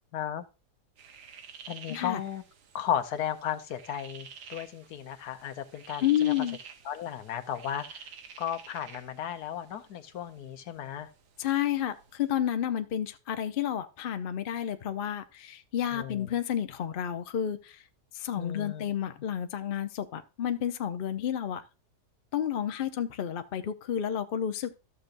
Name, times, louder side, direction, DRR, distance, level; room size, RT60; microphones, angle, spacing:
voice 1, 0.1-0.4 1.7-2.4 2.7-6.3 6.8-8.1 8.4-11.1 15.9-16.3 18.4-18.8, left 10 dB, 75° left, 1.3 m, -35 dB
sound 1, 1.0-12.3, right 6 dB, 85° right, 1.5 m, -50 dB
voice 2, 1.9-2.2 6.0-6.6 11.4-17.8 18.1-21.6 22.3-24.7, left 10 dB, 55° left, 0.6 m, -30 dB
13.0 x 6.8 x 2.5 m
omnidirectional pair, 1.7 m